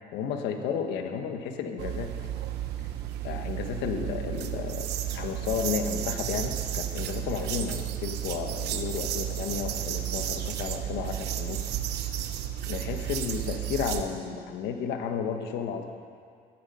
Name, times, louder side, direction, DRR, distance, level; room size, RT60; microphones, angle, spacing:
voice 1, 0.1-2.1 3.2-4.9 5.1-11.7 12.7-15.8, left 7 dB, 85° left, 5 dB, 1.2 m, -32 dB
sound 1, 1.8-14.0, right 11 dB, 80° right, 0.9 m, -32 dB
13.5 x 11.0 x 5.4 m, 2.2 s
cardioid pair, 110°, 17 cm